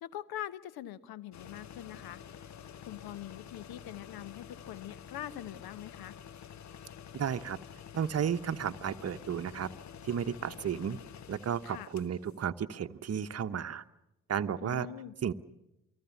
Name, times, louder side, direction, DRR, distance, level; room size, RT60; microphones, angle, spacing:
voice 1, 0.0-2.2 2.8-6.2 11.6-11.9 14.6-15.1, left 12 dB, 60° left, 17 dB, 1.2 m, -43 dB
sound 1, 1.3-12.4, left 8 dB, 40° left, 1.0 m, -49 dB
voice 2, 7.1-7.6 7.9-9.7 10.0-11.0 11.3-13.8 14.3-14.9 15.2-15.3, right 8 dB, 35° right, 10 dB, 1.1 m, -33 dB
28.5 x 20.0 x 7.2 m, 0.92 s
figure-of-eight pair, 45°, 41 cm